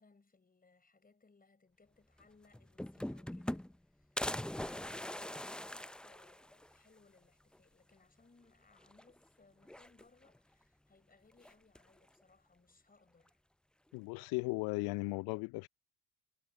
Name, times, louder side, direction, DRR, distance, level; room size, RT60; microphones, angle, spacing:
voice 1, 0.0-13.4, left 3 dB, 20° left, 5.8 m, -67 dB
sound 1, 2.2-2.3 2.5-3.8 4.2-6.8 7.2-7.3 7.5-7.6 8.8-9.3 9.6-10.4 11.4-12.0, left 1 dB, ahead, 0.5 m, -42 dB
voice 2, 13.9-15.7, left 26 dB, 55° left, 0.6 m, -36 dB
hypercardioid pair, 60°, 45 cm